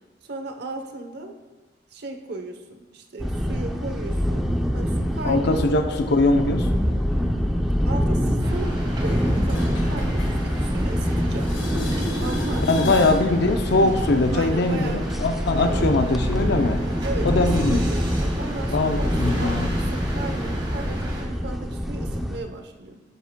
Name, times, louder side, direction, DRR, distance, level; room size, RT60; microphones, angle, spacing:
voice 1, 0.2-1.4 1.9-4.4 4.7-5.9 7.8-11.5 12.2-13.2 14.3-15.1 15.5-15.9 16.8-17.3 17.7-23.0, right 2 dB, 60° right, 5 dB, 0.9 m, -36 dB
sound 1, 3.2-22.4, equal, ahead, 0.6 m, -25 dB
voice 2, 5.2-6.7 12.7-16.8 17.2-17.8 18.7-19.7, left 2 dB, 60° left, 7 dB, 0.6 m, -21 dB
sound 2, 8.4-21.2, right 1 dB, 25° right, 1.6 m, -36 dB
sound 3, 9.0-11.1 11.3-13.3 19.0-19.1, left 1 dB, 85° left, 1.8 m, -33 dB
12.0 x 8.2 x 2.2 m, 1.2 s
head